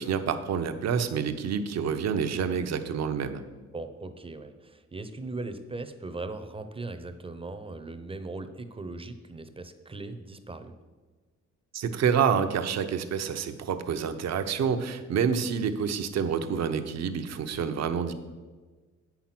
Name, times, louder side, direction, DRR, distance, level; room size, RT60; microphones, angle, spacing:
voice 1, 0.0-3.4 11.7-18.1, right 7 dB, 60° right, 8 dB, 0.8 m, -28 dB
voice 2, 3.7-10.7, right 2 dB, 20° right, 9 dB, 0.7 m, -39 dB
8.4 x 5.9 x 5.9 m, 1.3 s
cardioid pair, 90°, 30 cm